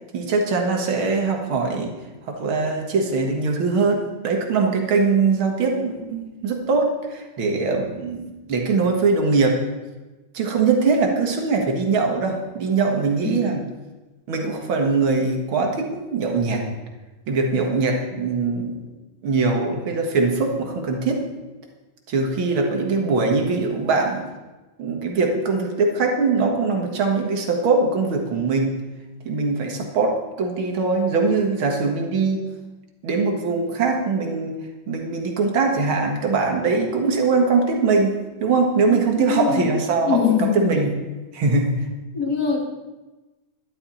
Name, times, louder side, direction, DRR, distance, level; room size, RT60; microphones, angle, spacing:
voice 1, 0.1-1.9 2.3-9.6 10.3-13.6 14.3-16.6 17.3-18.8 19.2-21.3 22.1-24.2 24.8-28.8 29.3-32.5 33.0-34.6 34.9-40.9 41.3-41.8, right 4 dB, 50° right, 2 dB, 1.9 m, -22 dB
voice 2, 38.9-39.7 40.0-40.7 42.1-42.7, left 7 dB, 45° left, 2 dB, 1.3 m, -23 dB
11.5 x 11.5 x 4.3 m, 1.2 s
omnidirectional pair, 3.7 m